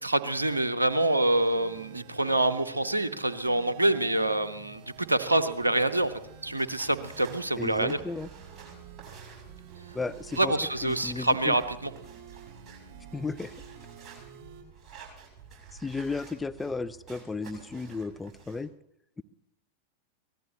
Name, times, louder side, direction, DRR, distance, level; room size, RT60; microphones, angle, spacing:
voice 1, 0.0-6.1 6.4-8.0 10.4-11.9, right 2 dB, 80° right, 13 dB, 0.7 m, -26 dB
sound 1, 0.9-14.6, right 7 dB, 40° right, 5.7 m, -49 dB
sound 2, 5.8-18.6, right 6 dB, 25° right, 6.7 m, -51 dB
voice 2, 7.6-8.3 9.9-10.5 10.8-11.6 13.1-13.5 15.7-18.7 19.2-19.3, left 3 dB, 10° left, 14 dB, 0.5 m, -34 dB
24.0 x 18.0 x 3.0 m, 0.81 s
figure-of-eight pair, 90°, 0 cm